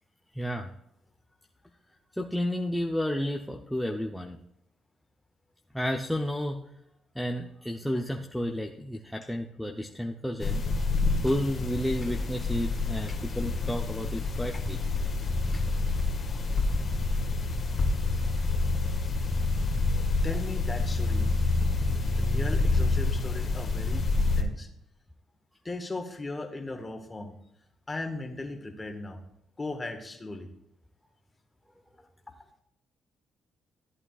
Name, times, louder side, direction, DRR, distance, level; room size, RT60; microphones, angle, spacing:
voice 1, 0.3-0.7 2.2-4.4 5.7-6.6 7.1-10.7 11.2-14.8 18.3-18.4 18.9-19.0 20.0-20.1, equal, ahead, 1 dB, 0.7 m, -31 dB
sound 1, 10.4-24.4, left 3 dB, 45° left, 1.7 m, -27 dB
voice 2, 20.2-21.3 21.9-24.7 25.6-27.3 27.9-29.2 29.6-30.5, left 2 dB, 20° left, 4 dB, 1.6 m, -38 dB
14.0 x 8.5 x 2.4 m, 0.78 s
cardioid pair, 90°, 0 cm